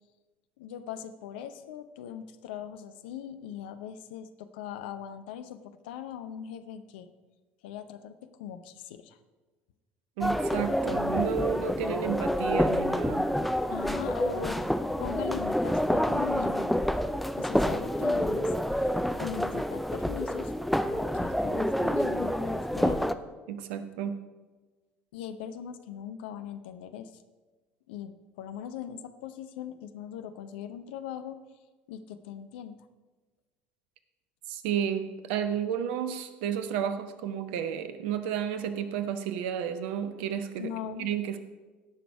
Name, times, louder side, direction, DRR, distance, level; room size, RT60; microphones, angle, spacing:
voice 1, 0.6-7.1 7.6-9.2 13.7-16.8 17.4-18.9 19.2-20.5 20.9-23.0 25.1-27.1 27.9-31.4 31.9-32.8 40.6-41.1, left 9 dB, 65° left, 10 dB, 0.7 m, -40 dB
sound 1, 10.2-23.1, equal, ahead, 0.6 m, -28 dB
voice 2, 10.2-13.3 23.5-24.2 34.5-40.7 41.0-41.4, right 8 dB, 65° right, 10 dB, 0.9 m, -32 dB
17.0 x 6.1 x 4.7 m, 1.3 s
figure-of-eight pair, 65°, 6 cm